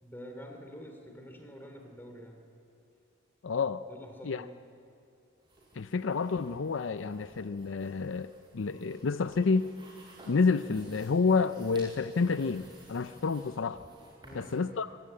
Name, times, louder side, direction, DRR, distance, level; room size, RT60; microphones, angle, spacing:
voice 1, 0.0-2.4 3.9-4.5 14.2-14.6, equal, 10° left, 3 dB, 3.0 m, -47 dB
voice 2, 3.4-3.8 4.2-4.5 5.7-9.7 10.3-13.8 14.3-14.9, left 4 dB, 75° left, 12 dB, 0.5 m, -29 dB
sound 1, 5.4-14.6, right 1 dB, 25° right, 6.4 m, -55 dB
25.5 x 17.0 x 8.7 m, 2.6 s
head